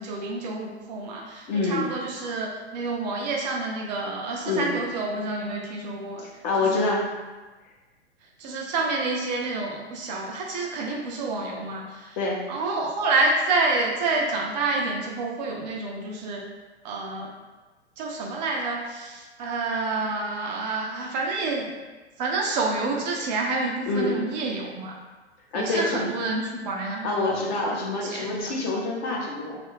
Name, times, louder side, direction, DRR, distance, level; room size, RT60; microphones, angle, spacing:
voice 1, 0.0-6.2 6.6-7.0 8.4-12.2 12.5-16.4 16.8-17.3 18.0-21.7 22.2-25.0 25.5-28.6, right 3 dB, 40° right, -1 dB, 0.5 m, -28 dB
voice 2, 1.5-1.9 4.5-4.7 6.2-7.1 12.2-12.4 23.9-24.2 25.5-26.1 27.0-29.6, left 3 dB, 40° left, -2 dB, 0.7 m, -26 dB
2.6 x 2.4 x 2.9 m, 1.2 s
figure-of-eight pair, 105°, 34 cm